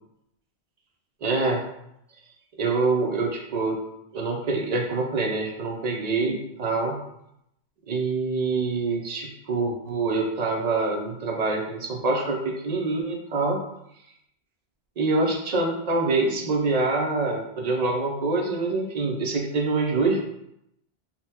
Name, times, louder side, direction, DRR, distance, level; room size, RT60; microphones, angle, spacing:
voice 1, 1.2-1.7 2.6-3.8 4.1-7.0 7.9-13.6 15.0-20.2, right 3 dB, 50° right, 1 dB, 0.5 m, -25 dB
3.5 x 2.1 x 2.8 m, 0.79 s
omnidirectional pair, 1.1 m